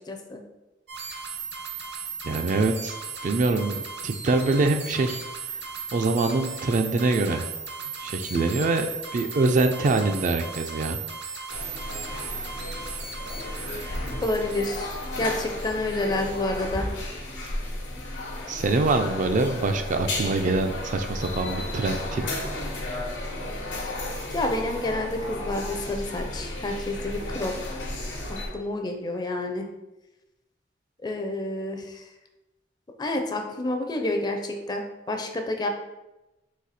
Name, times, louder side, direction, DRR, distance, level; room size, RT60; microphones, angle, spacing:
voice 1, 0.1-0.4 14.2-14.9 15.2-16.9 24.3-27.5 28.5-29.6 31.0-31.8 33.0-35.7, left 2 dB, 20° left, 4 dB, 0.4 m, -29 dB
sound 1, 0.9-16.7, right 5 dB, 65° right, 0.8 m, -37 dB
voice 2, 2.2-3.0 3.2-5.2 5.9-7.5 8.0-8.9 9.1-11.0 18.5-22.2, right 3 dB, 40° right, 6 dB, 0.3 m, -24 dB
sound 2, 11.5-28.5, left 1 dB, 85° left, 1.1 m, -33 dB
4.1 x 2.7 x 4.1 m, 0.99 s
head